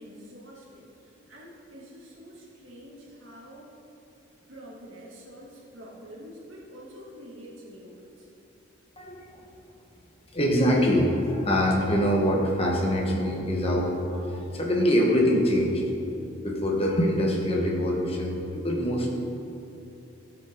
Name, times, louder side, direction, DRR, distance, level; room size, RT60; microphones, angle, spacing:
voice 1, 0.0-3.7 4.5-8.3, equal, 75° right, -5 dB, 2.8 m, -46 dB
voice 2, 9.0-9.4 10.3-15.8 16.4-19.1, equal, 30° left, -1 dB, 1.5 m, -24 dB
16.5 x 7.6 x 3.9 m, 2.8 s
head